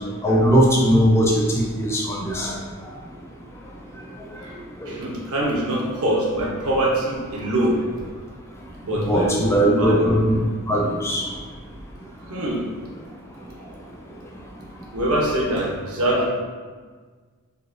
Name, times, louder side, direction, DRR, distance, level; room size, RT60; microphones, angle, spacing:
voice 1, 0.2-2.5 4.8-4.9 8.9-10.4 10.7-11.2 16.2-16.3, equal, 10° left, -2 dB, 0.4 m, -19 dB
voice 2, 4.8-7.9 8.8-10.1 12.2-12.6 13.6-13.8 14.9-16.3, right 1 dB, 80° right, -4 dB, 0.9 m, -24 dB
3.9 x 2.8 x 2.6 m, 1.5 s
head